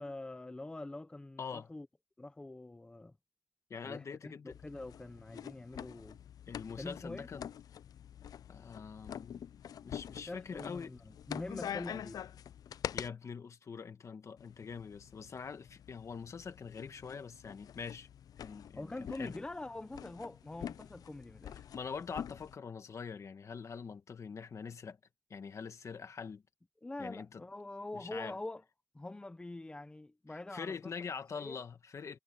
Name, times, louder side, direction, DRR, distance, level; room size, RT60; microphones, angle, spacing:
voice 1, 0.0-1.9 2.2-3.1 3.8-6.2 6.8-7.3 10.3-12.2 18.7-21.6 26.8-28.6 28.9-30.9 31.3-31.6, left 2 dB, 15° left, 0.7 m, -44 dB
voice 2, 1.4-1.7 3.7-4.6 6.5-7.5 8.5-9.5 9.8-10.9 12.9-18.1 18.4-19.4 21.6-25.0 25.3-26.4 27.0-27.4 27.9-28.4 30.5-32.2, left 6 dB, 50° left, 1.5 m, -44 dB
sound 1, 4.5-13.1 14.4-22.6, left 9 dB, 75° left, 0.3 m, -46 dB
wide cardioid pair, 145°, 6 cm